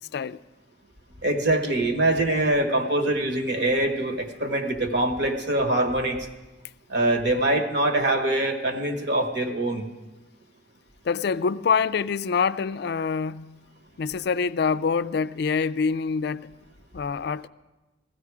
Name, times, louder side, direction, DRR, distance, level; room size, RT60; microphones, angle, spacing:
voice 1, 1.2-6.3 6.9-9.9, right 1 dB, 65° right, 1.4 m, -24 dB
voice 2, 11.0-13.6 14.0-16.6 16.9-17.5, left 5 dB, 60° left, 0.4 m, -25 dB
16.0 x 14.0 x 4.8 m
head